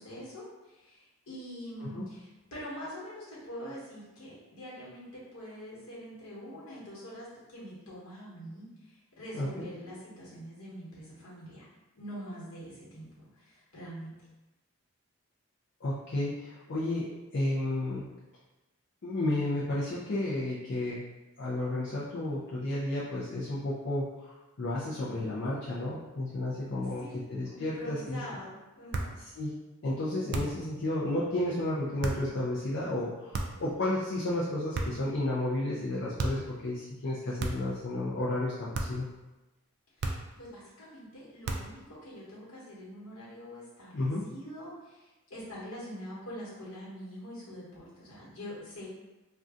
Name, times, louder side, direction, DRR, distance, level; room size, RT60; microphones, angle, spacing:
voice 1, 0.0-11.7 11.9-14.1 26.8-27.3 27.5-29.1 40.0-48.9, equal, 80° left, -6 dB, 1.2 m, -44 dB
voice 2, 9.3-9.6 15.8-18.1 19.0-21.0 21.4-28.2 29.4-29.6 29.8-39.1 43.9-44.2, left 1 dB, 55° left, -7 dB, 0.4 m, -32 dB
sound 1, 28.9-29.2 30.3-30.7 32.0-32.3 33.3-33.7 34.7-35.1 36.2-36.5 37.4-37.8 38.7-39.1 40.0-40.4 41.4-41.8, right 3 dB, 50° right, 0.3 m, -34 dB
2.6 x 2.2 x 3.5 m, 1.1 s
head